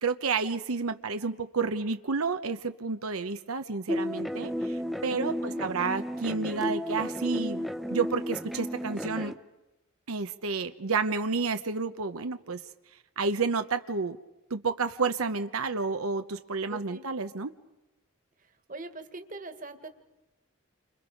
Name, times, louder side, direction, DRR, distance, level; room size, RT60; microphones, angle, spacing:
voice 1, 0.0-7.6 7.9-9.3 10.1-12.6 13.2-14.2 14.5-17.5, right 4 dB, 85° right, 8 dB, 0.9 m, -30 dB
sound 1, 3.9-9.3, equal, ahead, 0.8 m, -33 dB
voice 2, 5.4-5.7 16.7-17.1 18.4-19.9, right 2 dB, 40° right, 8 dB, 1.7 m, -42 dB
30.0 x 27.0 x 5.3 m, 0.99 s
head